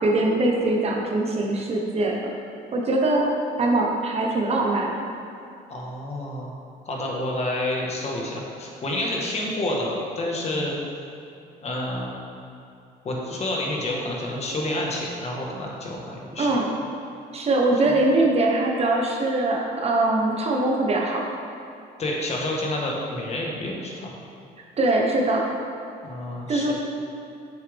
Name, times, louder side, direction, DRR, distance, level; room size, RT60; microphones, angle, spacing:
voice 1, 0.0-2.1 2.7-3.3 3.6-4.9 16.4-16.7 17.3-21.2 24.8-25.4 26.5-26.7, right 2 dB, 35° right, 0 dB, 1.1 m, -22 dB
voice 2, 5.7-6.5 6.8-10.8 11.6-12.1 13.0-16.6 17.8-17.9 22.0-24.2 26.0-26.7, left 1 dB, 40° left, -2 dB, 1.5 m, -29 dB
7.3 x 7.3 x 3.6 m, 2.6 s
cardioid pair, 110°, 17 cm